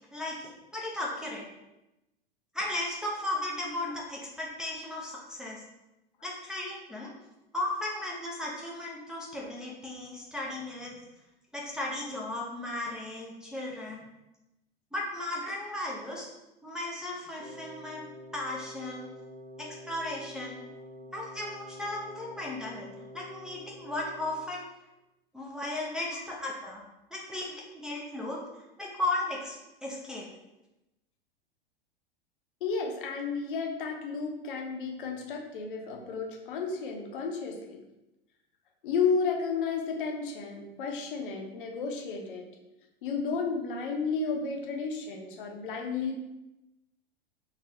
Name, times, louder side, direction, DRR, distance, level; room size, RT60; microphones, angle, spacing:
voice 1, 0.1-1.5 2.5-5.6 6.2-7.1 7.5-11.0 11.5-14.0 14.9-16.3 16.6-19.1 19.6-20.6 21.1-22.9 23.1-24.6 25.3-26.8 27.1-28.4 28.8-30.3, left 1 dB, ahead, -4 dB, 0.5 m, -35 dB
Wind instrument woodwind instrument, 17.4-24.7, left 1 dB, 45° right, 1.2 m, -47 dB
voice 2, 32.6-37.8 38.8-42.4 43.0-46.2, left 5 dB, 55° left, 2 dB, 0.8 m, -32 dB
4.2 x 3.0 x 2.6 m, 0.94 s
figure-of-eight pair, 90°, 31 cm